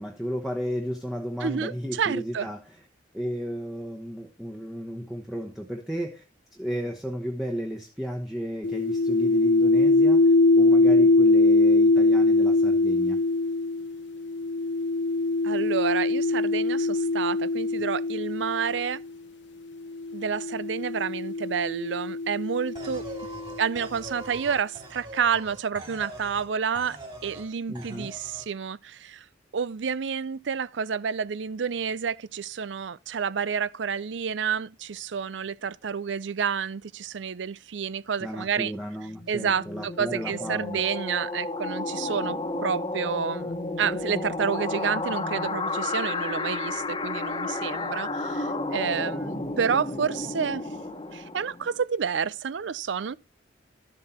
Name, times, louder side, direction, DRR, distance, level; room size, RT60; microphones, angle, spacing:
voice 1, 0.0-2.8 3.1-6.2 6.5-13.2 27.7-28.1 38.2-40.8, equal, ahead, 1.0 m, -34 dB
voice 2, 1.4-2.5 15.4-19.0 20.1-23.1 23.6-27.0 27.2-29.2 29.5-38.7 39.3-50.7 51.1-53.1, right 6 dB, 85° right, 0.5 m, -29 dB
sound 1, 8.6-19.0 19.9-23.6, left 2 dB, 80° left, 0.9 m, -22 dB
sound 2, 22.7-26.5 26.7-27.5 27.7-28.5, right 1 dB, 25° right, 3.0 m, -42 dB
sound 3, 39.1-51.7, left 2 dB, 25° left, 1.1 m, -32 dB
12.5 x 7.6 x 4.3 m
head